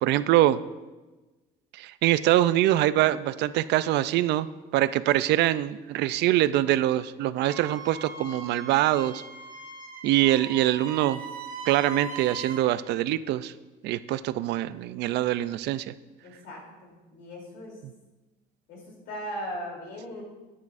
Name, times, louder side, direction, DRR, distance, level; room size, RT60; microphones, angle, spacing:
voice 1, 0.0-0.6 1.7-4.5 4.7-9.2 10.0-11.2 11.7-13.5 13.8-15.9, right 14 dB, 75° right, 15 dB, 0.4 m, -24 dB
Wind instrument woodwind instrument, 7.4-12.7, right 5 dB, 50° right, 1.4 m, -40 dB
voice 2, 16.2-17.8 18.7-20.2, equal, 90° left, -2 dB, 3.1 m, -38 dB
9.5 x 9.4 x 2.5 m, 1.2 s
cardioid pair, 110°, 18 cm